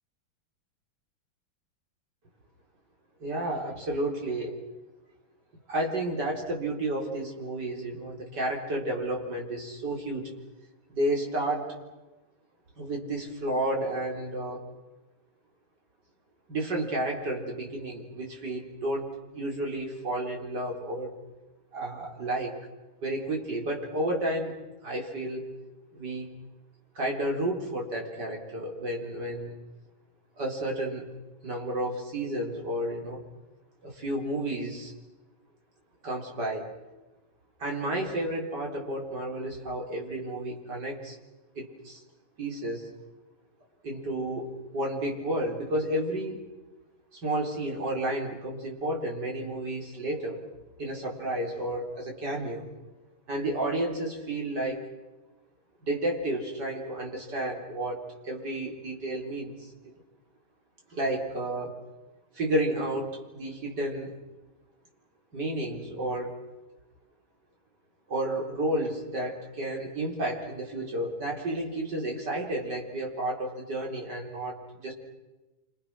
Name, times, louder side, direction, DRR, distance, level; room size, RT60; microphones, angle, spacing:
voice 1, 3.2-4.6 5.7-10.3 10.9-11.7 12.8-14.6 16.5-19.1 19.3-21.1 21.7-22.5 23.0-25.5 25.9-26.3 26.9-29.5 30.4-31.0 31.4-33.2 33.8-34.9 36.0-36.7 37.6-41.2 41.5-42.0 42.4-42.9 43.8-44.5 44.7-46.4 47.1-50.4 50.8-52.7 53.3-54.8 55.8-59.5 60.9-61.8 62.3-63.1 63.4-64.1 65.3-66.3 68.1-74.5 74.8-74.9, right 1 dB, 55° right, 0 dB, 4.8 m, -31 dB
30.0 x 26.0 x 6.3 m, 1.1 s
omnidirectional pair, 2.2 m